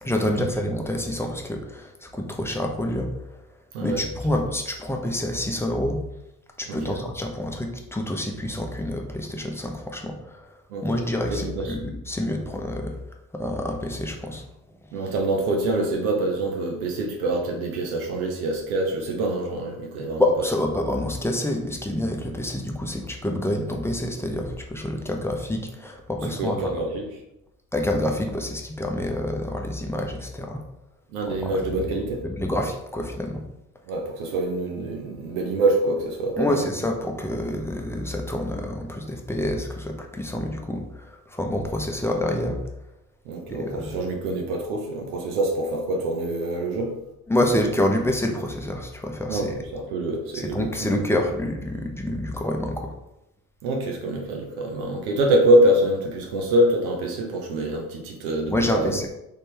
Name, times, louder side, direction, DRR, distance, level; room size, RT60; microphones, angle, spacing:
voice 1, 0.0-3.1 3.8-6.0 6.6-10.5 10.8-12.9 13.3-14.4 20.2-26.7 27.7-30.6 32.2-33.4 36.4-42.6 43.5-43.9 47.3-49.5 50.3-52.9 58.5-59.1, left 1 dB, 5° left, 2 dB, 0.8 m, -27 dB
voice 2, 6.7-7.0 10.7-11.8 14.9-20.2 26.2-27.1 31.1-32.2 33.9-36.6 43.2-46.9 49.3-51.0 53.6-59.0, right 1 dB, 70° right, 1 dB, 0.9 m, -25 dB
4.1 x 3.4 x 3.3 m, 0.87 s
figure-of-eight pair, 45°, 44 cm